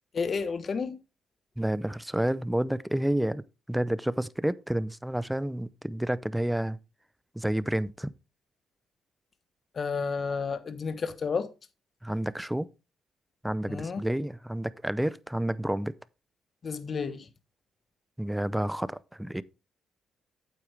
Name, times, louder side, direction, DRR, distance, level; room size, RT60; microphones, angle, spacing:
voice 1, 0.1-1.0 9.7-11.5 13.7-14.0 16.6-17.3, left 5 dB, 45° left, 1.1 m, -31 dB
voice 2, 1.6-3.4 3.7-6.8 7.4-8.1 12.0-12.7 13.4-15.9 18.2-19.4, right 1 dB, 5° right, 0.5 m, -29 dB
8.7 x 8.3 x 3.3 m
cardioid pair, 90°, 0 cm